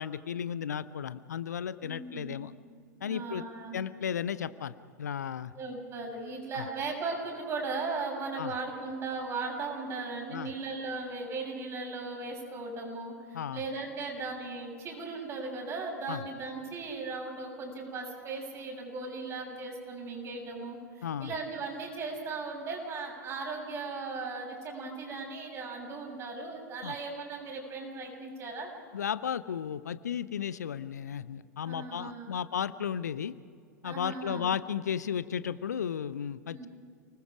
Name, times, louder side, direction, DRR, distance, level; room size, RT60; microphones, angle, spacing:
voice 1, 0.0-2.5 3.0-3.4 3.7-5.5 6.5-6.6 8.4-8.5 10.3-10.5 13.3-13.6 16.1-16.2 21.0-21.3 26.8-26.9 28.9-33.3 33.8-36.7, left 8 dB, 70° left, 15 dB, 0.6 m, -34 dB
voice 2, 1.8-2.3 3.0-3.8 5.6-28.7 31.6-32.3 33.8-34.5 36.4-36.7, right 3 dB, 30° right, 0 dB, 7.1 m, -37 dB
29.5 x 20.0 x 4.9 m, 2.3 s
figure-of-eight pair, 95°, 9 cm